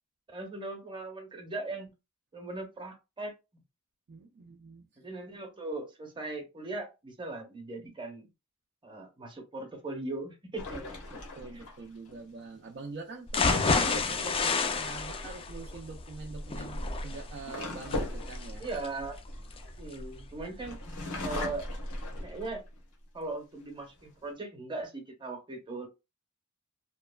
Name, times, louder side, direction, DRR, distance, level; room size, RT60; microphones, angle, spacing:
voice 1, 0.3-1.9 2.3-3.3 5.0-8.3 8.8-10.9 11.5-11.7 18.6-19.2 19.8-20.8 21.2-21.6 22.2-22.6 23.1-25.9, right 2 dB, 20° right, 0.8 m, -39 dB
voice 2, 4.1-4.9 11.3-18.6, right 3 dB, 50° right, 0.4 m, -44 dB
sound 1, 10.6-12.2 15.1-15.4 16.4-20.1 20.6-22.8 23.3-23.4 23.8-24.3, left 2 dB, 90° left, 1.0 m, -38 dB
sound 2, 13.3-21.2 21.6-21.7 22.1-22.2, left 4 dB, 25° left, 0.3 m, -31 dB
2.9 x 2.3 x 2.2 m
head